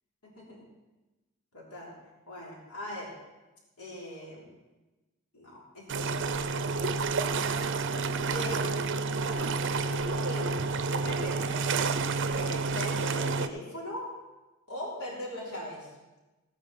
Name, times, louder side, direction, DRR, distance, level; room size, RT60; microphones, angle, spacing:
voice 1, 0.2-0.7 1.5-1.9 2.3-3.1 3.8-4.5 5.3-7.8 8.3-8.6 9.1-9.4 9.9-11.5 12.3-14.1 14.7-15.9, left 1 dB, 85° left, -4 dB, 3.5 m, -41 dB
sound 1, 5.9-13.5, right 4 dB, 55° right, 0.6 m, -29 dB
16.0 x 9.3 x 4.2 m, 1.1 s
head